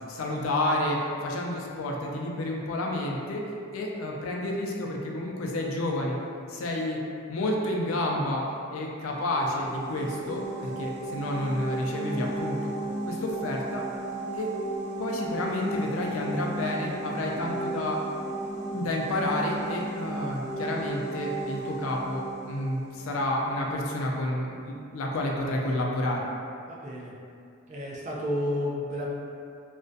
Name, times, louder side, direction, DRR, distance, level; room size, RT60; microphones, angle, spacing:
voice 1, 0.1-3.4 3.7-6.2 6.5-7.0 7.3-8.4 8.7-12.6 13.1-13.8 14.3-14.5 15.0-18.0 18.7-26.3, left 1 dB, 85° left, -1 dB, 0.4 m, -30 dB
sound 1, 9.1-23.8, right 2 dB, 90° right, 0.7 m, -35 dB
voice 2, 26.7-27.1 27.7-29.1, left 1 dB, 35° right, -4 dB, 0.4 m, -31 dB
2.3 x 2.1 x 2.5 m, 2.5 s
head